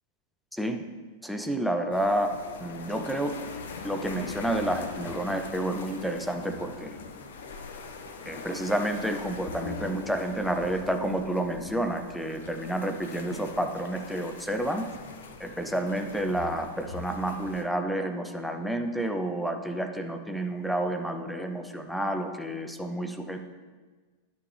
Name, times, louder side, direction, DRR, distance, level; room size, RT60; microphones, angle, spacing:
voice 1, 0.5-0.8 1.2-2.3 2.6-3.3 3.8-7.0 8.3-14.8 15.4-23.4, right 1 dB, ahead, 5 dB, 0.6 m, -30 dB
sound 1, 1.9-17.7, left 4 dB, 60° left, 0.7 m, -42 dB
10.0 x 6.6 x 3.3 m, 1.4 s
figure-of-eight pair, 90°, 0 cm